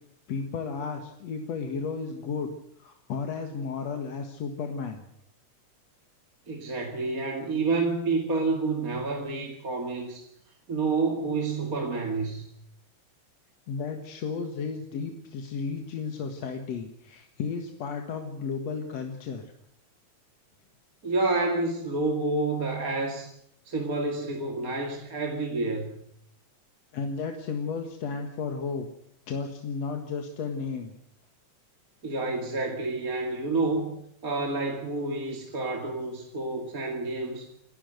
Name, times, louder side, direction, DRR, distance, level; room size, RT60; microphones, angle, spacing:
voice 1, 0.3-2.5 2.8-5.0 13.7-19.4 26.9-28.9 29.3-30.9, left 5 dB, 60° left, 5 dB, 2.8 m, -33 dB
voice 2, 6.5-10.3 10.7-12.5 21.0-23.3 23.7-25.9 32.0-33.9 34.2-37.5, right 3 dB, 30° right, 2 dB, 2.5 m, -29 dB
28.5 x 13.0 x 8.0 m, 0.73 s
omnidirectional pair, 3.5 m